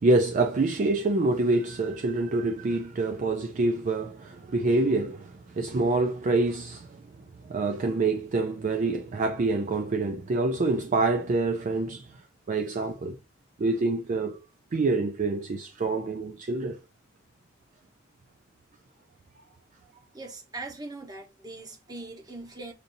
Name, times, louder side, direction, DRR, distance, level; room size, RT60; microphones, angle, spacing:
voice 1, 0.0-7.0 7.4-12.2 12.5-13.2 13.6-14.4 14.7-16.8, right 2 dB, 40° right, 0.4 m, -26 dB
voice 2, 20.1-22.7, right 2 dB, 20° right, 1.0 m, -41 dB
6.5 x 2.6 x 2.6 m
head